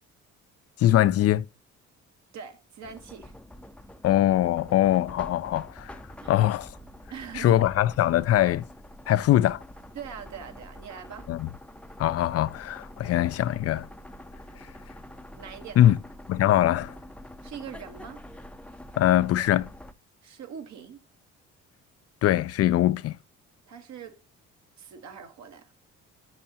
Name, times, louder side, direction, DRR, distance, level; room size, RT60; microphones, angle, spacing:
voice 1, 0.8-1.4 4.0-5.9 6.3-6.7 7.3-8.6 9.1-9.6 11.3-11.5 12.0-13.9 15.8-16.0 16.3-16.9 19.0-19.7 22.2-23.2, left 13 dB, 55° left, 0.4 m, -22 dB
voice 2, 2.3-3.3 6.2-6.3 7.1-7.6 9.1-9.2 9.9-11.3 15.4-15.9 17.4-18.2 20.2-21.0 23.7-24.1 24.8-25.7, right 7 dB, 65° right, 1.4 m, -42 dB
sound 1, 2.8-19.9, left 1 dB, 5° left, 0.6 m, -46 dB
7.6 x 6.5 x 2.8 m
supercardioid pair, 70°, 30 cm